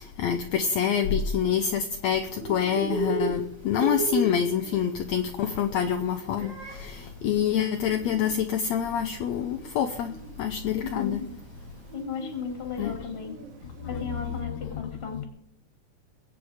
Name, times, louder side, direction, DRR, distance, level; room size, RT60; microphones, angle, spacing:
voice 1, 0.0-10.1 10.4-11.2 12.8-12.9 14.5-14.8 15.2-15.3, left 8 dB, 70° left, 6 dB, 1.8 m, -27 dB
Bird, 2.2-14.4, right 2 dB, 65° right, 3.1 m, -36 dB
voice 2, 10.9-11.3 11.9-13.4 13.9-15.3, left 5 dB, 20° left, 4 dB, 2.4 m, -35 dB
22.0 x 8.9 x 5.0 m, 0.72 s
omnidirectional pair, 3.7 m